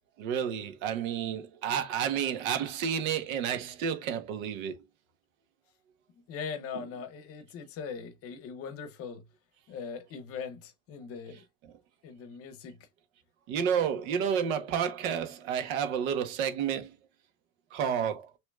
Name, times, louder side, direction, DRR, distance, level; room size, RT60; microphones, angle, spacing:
voice 1, 0.2-4.8 13.5-16.9 17.7-18.3, right 8 dB, 90° right, 1.2 m, -30 dB
voice 2, 6.3-9.2 9.7-11.4 12.0-12.9, left 6 dB, 35° left, 0.8 m, -40 dB
6.3 x 3.1 x 2.3 m
cardioid pair, 165°, 39 cm